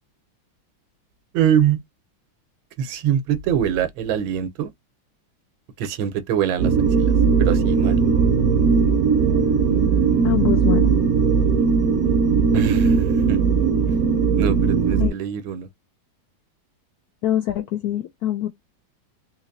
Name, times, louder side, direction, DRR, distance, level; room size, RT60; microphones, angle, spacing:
voice 1, 1.3-1.8 2.8-4.7 5.8-7.1 7.4-8.0 12.5-13.4 14.4-15.7, right 9 dB, 85° right, 1.5 m, -24 dB
sound 1, 6.6-15.1, right 5 dB, 65° right, 0.9 m, -18 dB
voice 2, 10.2-11.0 15.0-15.1 17.2-18.5, left 12 dB, 80° left, 0.8 m, -23 dB
3.9 x 2.9 x 2.5 m
omnidirectional pair, 2.1 m